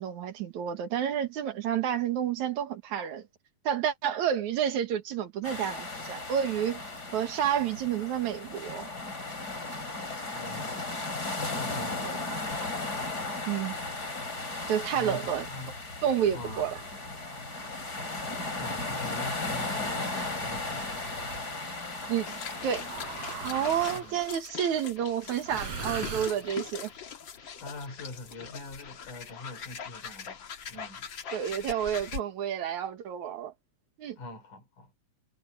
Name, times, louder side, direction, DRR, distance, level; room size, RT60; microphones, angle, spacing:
voice 1, 0.0-3.3 3.6-6.8 7.1-8.9 12.0-12.2 13.5-13.7 14.7-15.5 16.0-16.8 22.1-22.9 23.4-26.9 31.3-33.5 34.0-34.2, right 9 dB, 70° right, 2.9 m, -30 dB
sound 1, 5.4-24.0, left 2 dB, 30° left, 4.8 m, -36 dB
voice 2, 10.3-11.0 11.5-12.2 14.9-15.8 16.3-16.7 18.6-21.0 23.9-24.2 27.6-31.1 34.2-34.9, left 2 dB, 85° left, 5.8 m, -43 dB
sound 2, 16.4-17.0 18.0-19.2 20.2-21.5 22.8-24.3 25.4-26.8, right 6 dB, 55° right, 6.0 m, -42 dB
sound 3, 22.2-32.2, left 7 dB, 45° left, 1.9 m, -42 dB
omnidirectional pair, 3.5 m